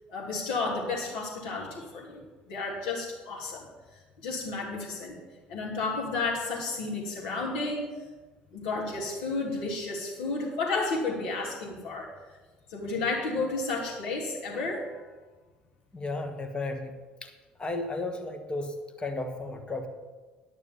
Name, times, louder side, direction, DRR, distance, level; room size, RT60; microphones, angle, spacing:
voice 1, 0.1-3.7 4.2-5.1 5.5-7.9 8.5-12.1 12.7-15.0, left 3 dB, 65° left, -4 dB, 3.1 m, -32 dB
voice 2, 15.9-17.3 17.6-19.9, left 2 dB, 20° left, 6 dB, 1.5 m, -34 dB
11.0 x 6.6 x 7.3 m, 1.3 s
figure-of-eight pair, 55°, 5 cm